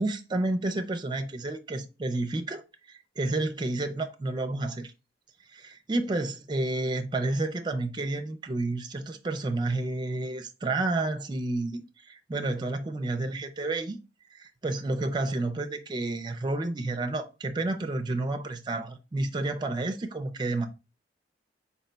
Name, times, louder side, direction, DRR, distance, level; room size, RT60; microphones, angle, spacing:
voice 1, 0.0-2.6 2.9-4.9 5.5-14.0 14.3-20.7, right 2 dB, 25° right, 0.4 m, -30 dB
4.3 x 2.2 x 4.0 m
head